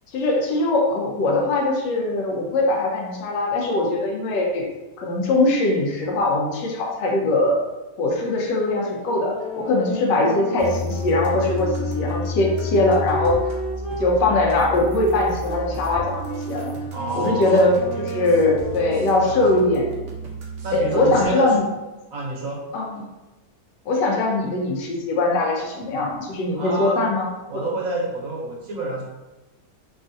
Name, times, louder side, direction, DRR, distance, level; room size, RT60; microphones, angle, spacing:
voice 1, 0.1-4.7 5.0-7.6 8.0-13.4 14.0-16.7 17.1-19.9 20.7-21.6 22.7-23.0 23.9-27.6, left 2 dB, 90° left, -1 dB, 1.3 m, -21 dB
sound 1, 8.6-14.1 14.7-19.9, right 1 dB, 45° left, 1.7 m, -33 dB
sound 2, 10.6-21.2, left 1 dB, 85° right, 0.5 m, -32 dB
voice 2, 16.9-17.7 19.2-19.6 20.6-21.5 22.1-22.6 26.6-27.0 27.5-29.0, right 2 dB, 65° right, -3 dB, 1.0 m, -28 dB
3.6 x 2.4 x 2.5 m, 1.1 s
omnidirectional pair, 1.8 m